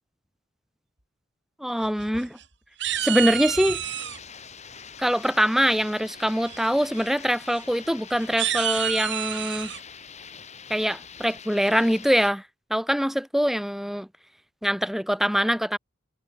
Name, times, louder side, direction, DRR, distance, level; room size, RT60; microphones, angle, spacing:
voice 1, 1.6-2.4 3.0-3.8 5.0-9.7 10.7-12.4 12.7-14.1 14.6-15.8, equal, ahead, 2.5 m, -23 dB
sound 1, 1.8-2.4 2.8-4.2 5.6-6.0 6.4-6.7 6.9-7.1 7.5-7.6 8.2-9.8, right 11 dB, 60° right, 5.8 m, -29 dB
sound 2, 3.8-12.3, left 6 dB, 35° left, 7.2 m, -44 dB
head